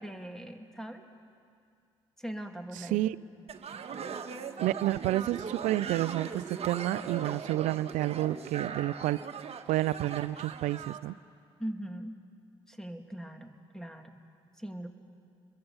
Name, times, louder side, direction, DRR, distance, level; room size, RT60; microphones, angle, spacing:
voice 1, 0.0-1.0 2.2-3.1 11.6-12.2 12.7-14.2 14.6-14.9, right 1 dB, 5° left, 5 dB, 2.6 m, -40 dB
sound 1, 3.5-11.0, right 6 dB, 50° right, 1.4 m, -39 dB
voice 2, 4.6-9.2 9.7-11.1, right 15 dB, 70° right, 20 dB, 0.5 m, -30 dB
28.5 x 22.5 x 5.6 m, 2.4 s
hypercardioid pair, 45°, 13 cm